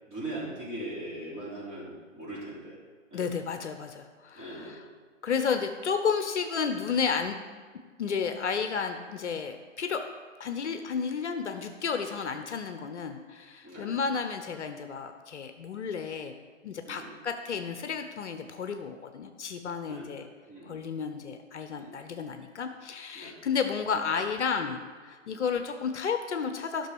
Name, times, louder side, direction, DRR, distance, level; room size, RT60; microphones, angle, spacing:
voice 1, 0.1-2.8 3.1-3.3 4.3-4.8 13.6-13.9 16.8-17.2 19.8-20.2 20.5-20.8 21.7-22.0 23.1-23.4 25.2-25.5, right 1 dB, 20° right, -8 dB, 3.5 m, -40 dB
voice 2, 3.1-4.7 5.2-7.4 8.0-10.0 10.4-16.3 16.6-20.3 20.6-26.9, left 6 dB, 60° left, 7 dB, 0.9 m, -32 dB
13.0 x 6.2 x 4.7 m, 1.5 s
hypercardioid pair, 145°, 39 cm